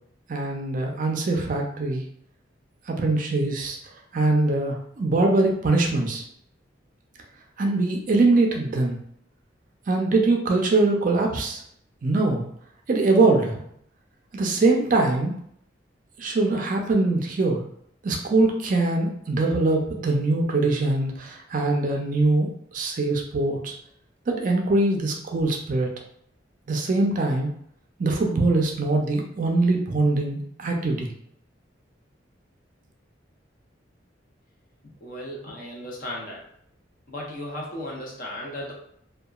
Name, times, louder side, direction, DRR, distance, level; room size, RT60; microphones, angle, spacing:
voice 1, 0.3-2.0 2.9-3.8 4.1-6.2 7.6-9.0 9.9-11.6 12.0-12.5 12.9-13.6 14.3-15.3 16.2-17.6 18.0-23.7 24.3-25.9 26.7-27.5 28.0-31.1, right 2 dB, 45° right, 2 dB, 0.4 m, -22 dB
voice 2, 35.0-36.4 37.1-38.7, left 1 dB, 45° left, -2 dB, 0.7 m, -35 dB
2.8 x 2.2 x 2.3 m, 0.69 s
head